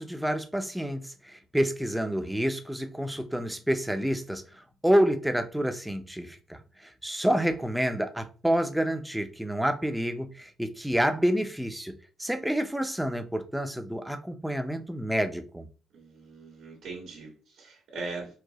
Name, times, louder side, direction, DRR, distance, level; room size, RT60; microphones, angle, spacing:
voice 1, 0.0-11.9 12.2-15.7, equal, 5° right, 0.5 m, -28 dB
voice 2, 15.9-18.4, right 3 dB, 85° right, 1.6 m, -40 dB
4.7 x 2.1 x 2.9 m
cardioid pair, 90°, 0 cm